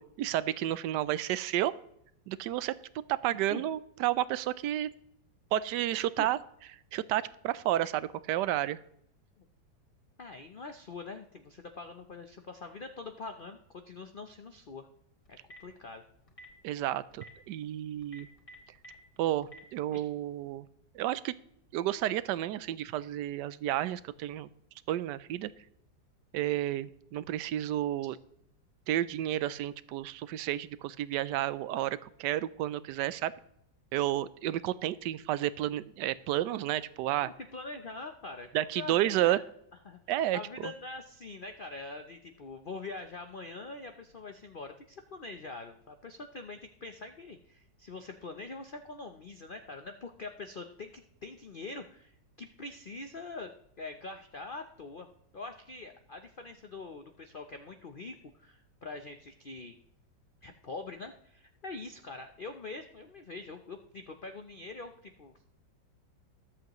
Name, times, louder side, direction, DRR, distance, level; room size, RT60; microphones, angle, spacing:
voice 1, 0.2-1.7 2.3-2.7 3.2-4.9 5.5-6.4 6.9-8.8 16.6-18.3 19.2-20.7 20.9-21.3 21.7-24.5 24.9-25.5 26.3-28.2 28.9-33.3 33.9-37.3 38.5-39.4 40.1-40.7, right 13 dB, 75° right, 16 dB, 1.1 m, -31 dB
voice 2, 10.2-14.9 15.3-16.0 19.9-20.0 37.2-39.4 39.8-40.0 40.3-55.1 55.3-59.8 60.4-65.3, left 3 dB, 65° left, 6 dB, 0.5 m, -44 dB
Telephone, 15.3-15.7 16.3-16.5 17.1-17.3 18.0-18.9 19.4-19.6, right 1 dB, 15° left, 2.2 m, -49 dB
21.0 x 7.9 x 3.0 m, 0.72 s
omnidirectional pair, 2.0 m